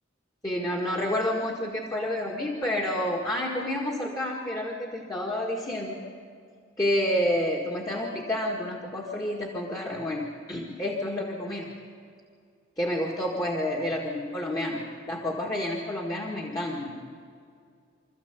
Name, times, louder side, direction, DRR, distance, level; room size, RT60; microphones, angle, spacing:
voice 1, 0.4-6.0 6.8-11.7 12.8-17.0, left 1 dB, 20° left, -2 dB, 1.7 m, -29 dB
25.5 x 14.0 x 8.3 m, 2.3 s
head